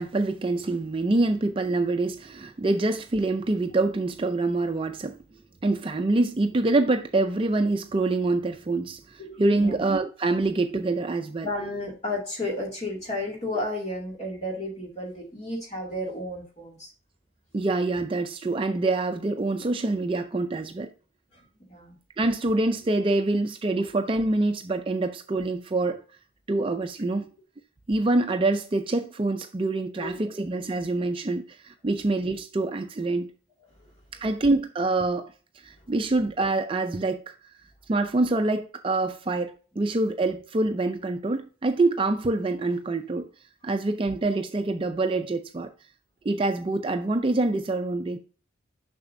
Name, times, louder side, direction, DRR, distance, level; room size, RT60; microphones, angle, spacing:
voice 1, 0.0-5.2 5.6-11.5 17.5-20.9 22.2-26.0 26.5-27.3 27.9-33.3 34.1-35.3 35.6-37.3 37.9-43.3 43.6-45.7 46.2-48.2, right 2 dB, 25° right, 0.4 m, -25 dB
voice 2, 9.2-9.8 11.4-16.9 21.3-22.0 30.0-30.3 34.2-34.3, left 1 dB, 35° left, 2.3 m, -33 dB
6.8 x 5.9 x 2.6 m
head